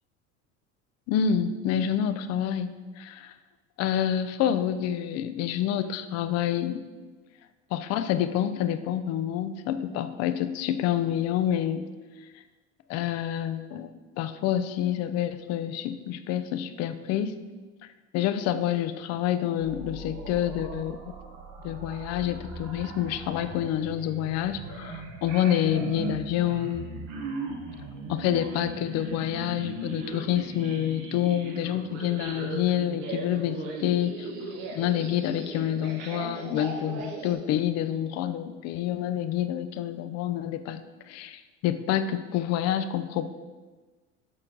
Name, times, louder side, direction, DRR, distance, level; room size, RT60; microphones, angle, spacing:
voice 1, 1.1-3.3 3.8-6.8 7.7-11.8 12.9-13.9 14.2-17.3 18.1-21.1 21.6-26.9 28.1-34.3 34.7-40.8 41.1-43.3, left 10 dB, 45° left, 10 dB, 0.5 m, -28 dB
sound 1, 19.6-37.3, right 3 dB, 60° right, 1.1 m, -38 dB
6.2 x 4.3 x 3.8 m, 1.3 s
hypercardioid pair, 75°, 35 cm